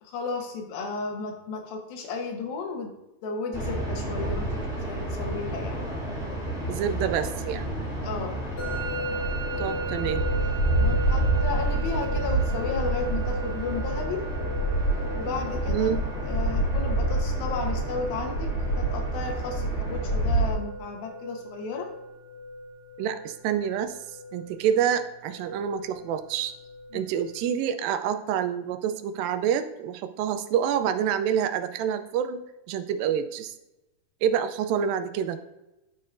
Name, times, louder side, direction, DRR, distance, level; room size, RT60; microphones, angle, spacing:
voice 1, 0.0-2.9 3.2-5.8 8.0-8.5 10.8-14.2 15.1-15.9 16.2-18.5 18.8-21.9 26.9-27.1, left 4 dB, 85° left, 3 dB, 2.9 m, -34 dB
sound 1, 3.5-20.5, right 1 dB, ahead, 1.7 m, -28 dB
voice 2, 6.7-7.7 9.6-10.2 15.7-16.0 23.0-24.0 24.3-26.5 26.9-32.4 32.7-33.5 34.2-35.4, right 8 dB, 85° right, 10 dB, 2.3 m, -27 dB
Musical instrument, 8.6-27.5, equal, 55° left, 3.3 m, -38 dB
9.5 x 6.5 x 2.5 m, 0.97 s
omnidirectional pair, 4.0 m